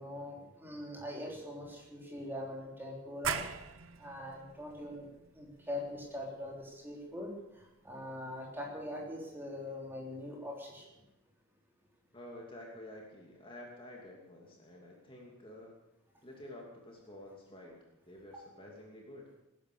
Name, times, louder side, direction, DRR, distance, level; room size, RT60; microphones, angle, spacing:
voice 1, 0.0-3.4 4.0-5.1 5.3-7.3 7.6-10.8 18.3-18.4, left 1 dB, 10° right, -2 dB, 3.5 m, -42 dB
sound 1, 3.2-8.6, right 7 dB, 60° right, 1.0 m, -43 dB
voice 2, 12.1-15.7 16.2-17.8 18.0-19.3, left 1 dB, 25° left, -1 dB, 2.8 m, -50 dB
19.5 x 10.5 x 6.9 m, 0.91 s
head